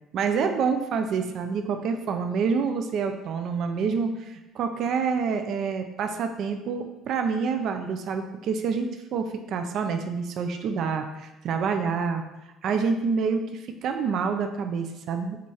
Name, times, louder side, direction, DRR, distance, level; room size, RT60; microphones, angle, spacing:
voice 1, 0.1-12.2 12.6-15.4, right 5 dB, 45° right, 6 dB, 0.5 m, -27 dB
8.2 x 3.2 x 4.3 m, 1.0 s
cardioid pair, 180°, 0 cm